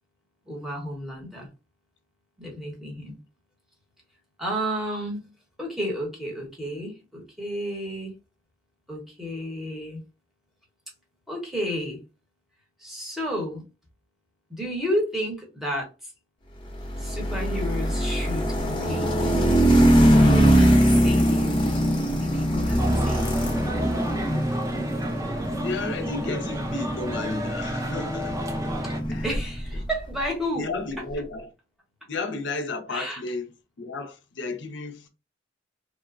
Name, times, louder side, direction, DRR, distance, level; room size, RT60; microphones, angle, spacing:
voice 1, 0.5-1.5 2.4-3.2 4.4-5.2 5.6-8.1 8.9-10.0 11.3-12.0 12.8-13.6 14.5-16.1 17.0-19.3 20.1-21.6 22.2-23.3 28.8-28.9 29.2-30.7 32.9-33.2, equal, ahead, 1.0 m, -32 dB
sound 1, 16.7-29.9, equal, 25° left, 0.6 m, -22 dB
sound 2, 22.8-29.0, right 1 dB, 15° right, 0.4 m, -33 dB
voice 2, 25.6-28.5 29.1-29.4 30.6-31.5 32.1-33.5 33.8-35.1, left 3 dB, 65° left, 0.5 m, -33 dB
3.0 x 2.1 x 2.4 m
head